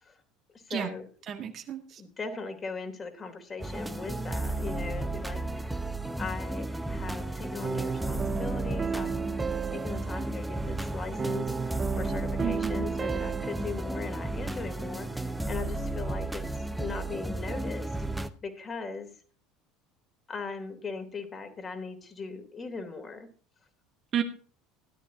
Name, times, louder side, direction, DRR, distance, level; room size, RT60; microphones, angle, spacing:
voice 1, 0.5-1.0 2.0-5.8 6.2-9.3 9.7-16.4 16.8-17.9 18.4-19.1 20.3-23.3, left 4 dB, 25° left, 5 dB, 3.3 m, -39 dB
voice 2, 1.3-2.0 12.4-12.9 24.1-24.2, right 9 dB, 40° right, 6 dB, 1.8 m, -32 dB
sound 1, 3.6-18.3, right 2 dB, 5° right, 1.2 m, -33 dB
sound 2, 7.6-13.8, right 5 dB, 25° right, 0.7 m, -34 dB
16.5 x 12.5 x 2.8 m, 0.40 s
figure-of-eight pair, 65°, 0 cm